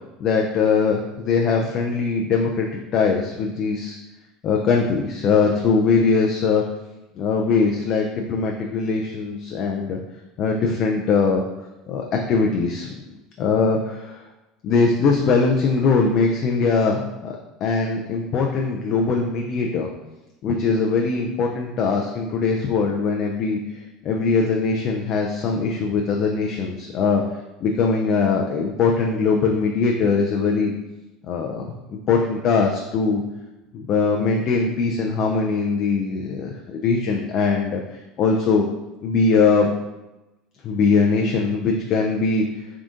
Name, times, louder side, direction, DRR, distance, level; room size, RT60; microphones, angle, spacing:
voice 1, 0.2-4.0 4.4-6.6 7.2-10.0 10.4-11.4 11.9-13.0 13.4-14.2 14.6-19.9 20.4-23.6 24.0-27.2 27.6-30.7 31.3-31.7 32.1-33.2 33.7-37.8 38.2-38.6 39.0-39.7 40.6-42.5, left 4 dB, 50° left, 1 dB, 0.4 m, -21 dB
3.7 x 2.4 x 3.7 m, 1.0 s
hypercardioid pair, 75°, 0 cm